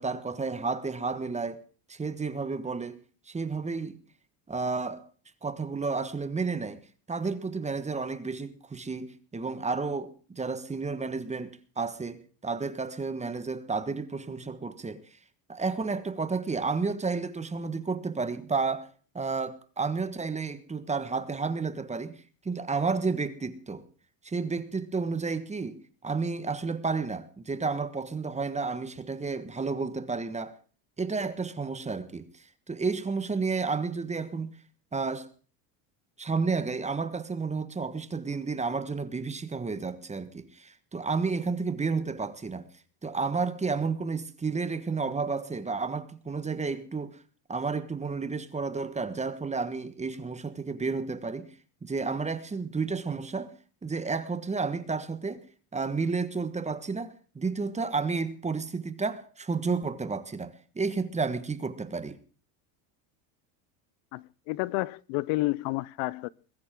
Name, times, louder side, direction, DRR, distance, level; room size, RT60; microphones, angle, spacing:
voice 1, 0.0-1.6 1.9-3.0 3.3-4.0 4.5-5.1 5.4-6.8 7.1-15.0 15.5-18.9 19.1-22.1 22.4-23.9 24.2-30.5 31.0-34.5 34.9-35.3 36.2-42.7 43.0-47.2 47.5-51.5 51.8-53.5 53.8-55.4 55.7-62.2, right 4 dB, 15° right, 1.4 m, -31 dB
voice 2, 64.1-66.3, left 21 dB, 65° left, 0.7 m, -30 dB
21.5 x 14.0 x 3.7 m
cardioid pair, 130°, 49 cm